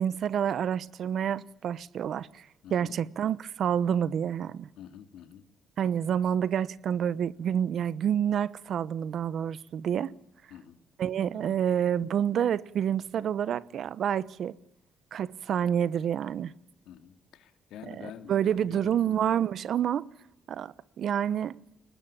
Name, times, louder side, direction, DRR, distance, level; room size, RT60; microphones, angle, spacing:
voice 1, 0.0-4.7 5.8-10.1 11.0-14.5 15.1-16.5 18.3-20.1 20.5-21.6, right 9 dB, 60° right, 0.9 m, -28 dB
voice 2, 2.6-3.0 4.8-5.5 10.5-10.8 11.3-11.6 16.8-19.1, left 9 dB, 85° left, 2.5 m, -47 dB
23.0 x 19.5 x 8.7 m
cardioid pair, 115°, 0 cm